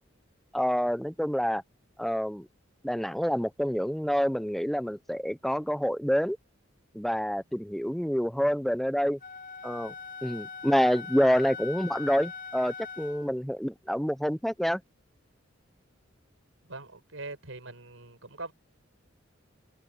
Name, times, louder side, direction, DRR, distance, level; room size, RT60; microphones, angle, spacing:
voice 1, 0.5-1.6 2.0-2.5 2.8-6.4 6.9-9.2 9.6-9.9 10.2-14.8, equal, ahead, 0.7 m, -27 dB
Wind instrument woodwind instrument, 9.2-13.3, left 5 dB, 45° left, 5.0 m, -41 dB
voice 2, 16.7-18.5, right 2 dB, 80° right, 5.1 m, -42 dB
head